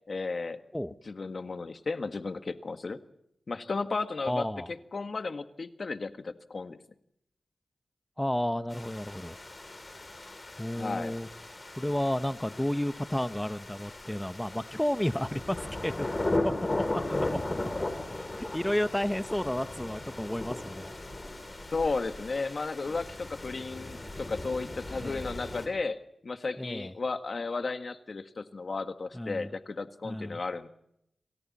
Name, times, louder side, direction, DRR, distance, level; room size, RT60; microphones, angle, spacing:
voice 1, 0.1-0.6 1.1-3.0 3.5-4.5 4.9-6.8 10.8-11.1 21.7-26.0 26.2-30.7, left 3 dB, 55° left, 8 dB, 1.7 m, -34 dB
voice 2, 4.3-4.7 8.2-9.4 10.6-11.3 11.8-16.1 16.4-16.8 17.1-17.4 18.1-20.9 25.0-25.2 26.6-26.9 29.1-29.5 30.0-30.4, left 1 dB, 10° left, 10 dB, 1.0 m, -32 dB
sound 1, 8.7-25.7, left 2 dB, 35° left, 6.2 m, -37 dB
28.5 x 25.0 x 4.3 m, 0.75 s
cardioid pair, 60°, 0 cm